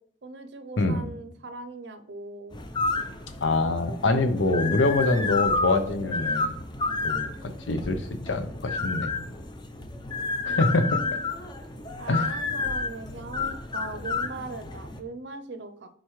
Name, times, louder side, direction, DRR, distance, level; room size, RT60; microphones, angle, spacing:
voice 1, 0.2-2.6 10.4-11.3 12.0-15.9, right 3 dB, 65° right, 8 dB, 0.6 m, -40 dB
voice 2, 0.8-1.1 3.4-6.5 7.0-9.1 10.5-11.0 12.1-12.4, left 2 dB, 85° left, 9 dB, 0.8 m, -25 dB
sound 1, 2.5-15.0, left 3 dB, 25° left, 0.5 m, -31 dB
7.9 x 4.6 x 3.2 m, 0.67 s
head